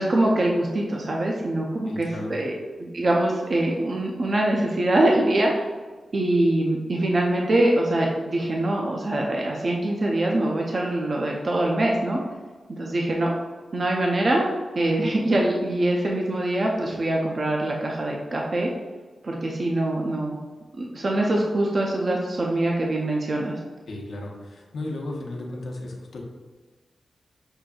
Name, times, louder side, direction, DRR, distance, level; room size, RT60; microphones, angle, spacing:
voice 1, 0.0-2.5 2.8-5.5 6.1-12.2 12.7-13.3 13.7-14.4 14.8-18.7 19.2-20.4 20.8-23.5, right 1 dB, 40° right, -2 dB, 0.4 m, -23 dB
voice 2, 1.9-2.4 23.9-26.2, left 2 dB, 75° left, 0 dB, 0.7 m, -35 dB
6.1 x 2.5 x 2.3 m, 1.4 s
wide cardioid pair, 175°, 0 cm